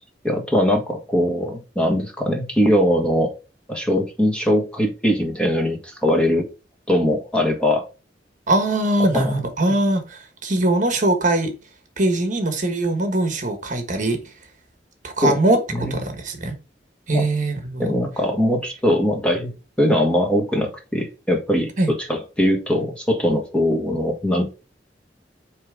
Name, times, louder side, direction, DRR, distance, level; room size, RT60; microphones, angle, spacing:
voice 1, 0.2-3.3 3.7-6.5 6.9-7.9 9.1-9.4 15.2-15.3 15.7-16.0 17.1-17.3 17.8-24.5, equal, 5° left, 1.5 m, -21 dB
voice 2, 8.5-11.5 12.0-14.2 15.0-16.5 17.1-17.9 21.8-21.9, right 2 dB, 45° right, 1.3 m, -21 dB
8.6 x 3.3 x 3.6 m
head